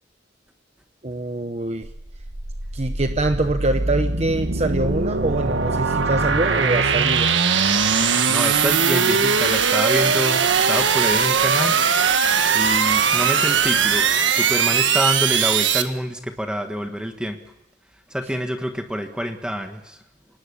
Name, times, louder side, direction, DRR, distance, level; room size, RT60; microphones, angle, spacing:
voice 1, 1.0-1.9 2.7-7.3, right 2 dB, 35° right, 7 dB, 1.0 m, -24 dB
sound 1, 1.8-15.8, right 6 dB, 85° right, 1.7 m, -20 dB
voice 2, 8.0-11.8 12.5-17.4 18.1-20.0, equal, 5° right, 5 dB, 1.4 m, -27 dB
26.5 x 19.0 x 8.5 m, 0.88 s
head